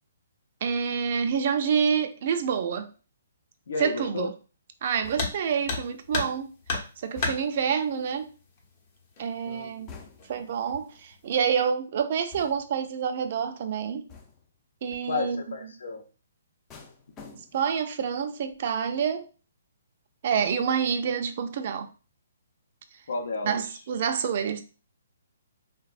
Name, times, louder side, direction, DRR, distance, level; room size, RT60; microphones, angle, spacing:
voice 1, 0.6-2.9 3.8-4.3 4.8-6.5 7.0-8.3 9.2-9.9 10.3-14.1 14.8-15.4 17.5-19.3 20.2-21.9 23.4-24.6, right 7 dB, 50° right, 0.4 m, -27 dB
voice 2, 3.7-4.3 9.5-9.9 15.1-16.0 23.1-23.6, left 3 dB, 75° left, 0.6 m, -32 dB
sound 1, 5.0-5.6 7.2-7.7 9.9-10.5 12.3-12.9 14.1-14.6 16.7-17.8 18.2-18.6, left 5 dB, 20° left, 0.4 m, -48 dB
sound 2, 5.1-5.4 5.7-6.4 6.7-7.4 8.6-8.7 9.2-9.3 10.0-10.4 10.7-11.1, left 3 dB, 40° left, 0.8 m, -30 dB
3.1 x 2.0 x 2.4 m
hypercardioid pair, 155°, 0 cm